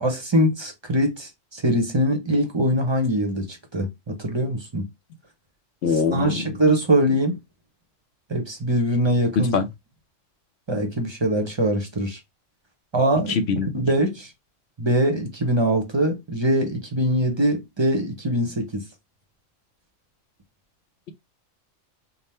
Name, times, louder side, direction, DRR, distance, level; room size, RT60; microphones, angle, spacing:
voice 1, 0.0-4.8 5.9-7.4 8.3-9.6 10.7-12.2 12.9-13.4 13.6-14.3 14.8-18.8, right 1 dB, 25° right, 0.6 m, -23 dB
voice 2, 5.8-6.4 9.5-9.7 13.3-13.7, left 5 dB, 60° left, 0.9 m, -22 dB
3.6 x 2.1 x 4.2 m
omnidirectional pair, 1.3 m